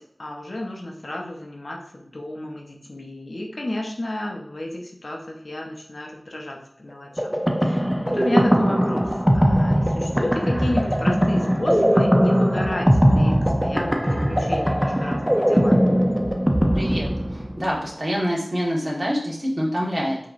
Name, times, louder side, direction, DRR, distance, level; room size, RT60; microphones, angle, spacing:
voice 1, 0.0-5.2 5.4-15.9, left 1 dB, 60° left, 0 dB, 0.8 m, -32 dB
sound 1, 7.2-17.7, equal, 5° right, 0.6 m, -20 dB
voice 2, 16.7-20.2, equal, 40° right, -5 dB, 1.6 m, -26 dB
4.9 x 3.0 x 2.6 m, 0.71 s
wide cardioid pair, 45°, 0 cm